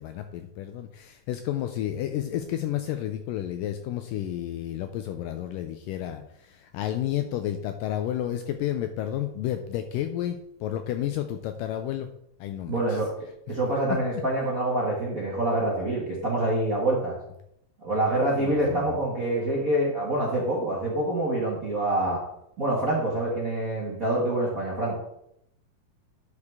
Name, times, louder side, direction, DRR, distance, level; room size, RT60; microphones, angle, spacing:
voice 1, 0.0-12.1 12.4-13.0 14.1-14.2 18.4-19.0, left 11 dB, 85° left, 7 dB, 2.0 m, -31 dB
voice 2, 12.7-13.1 13.5-17.2 17.8-22.2 22.6-25.0, right 1 dB, 40° right, -4 dB, 1.2 m, -26 dB
9.8 x 6.4 x 3.6 m, 0.76 s
omnidirectional pair, 4.3 m